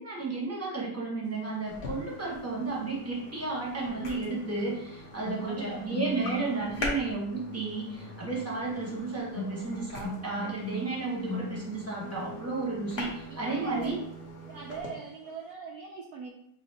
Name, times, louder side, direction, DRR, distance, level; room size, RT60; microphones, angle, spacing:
voice 1, 0.0-14.0, right 3 dB, 10° right, -4 dB, 0.7 m, -33 dB
sound 1, 1.7-14.9, left 2 dB, 50° left, 0.7 m, -43 dB
sound 2, 2.5-2.6 3.9-15.0 15.2-15.5, left 1 dB, 75° left, 1.4 m, -42 dB
voice 2, 5.5-6.6 13.3-14.0 14.4-16.3, right 5 dB, 90° right, 0 dB, 0.8 m, -42 dB
5.9 x 2.9 x 2.8 m, 0.73 s
omnidirectional pair, 2.2 m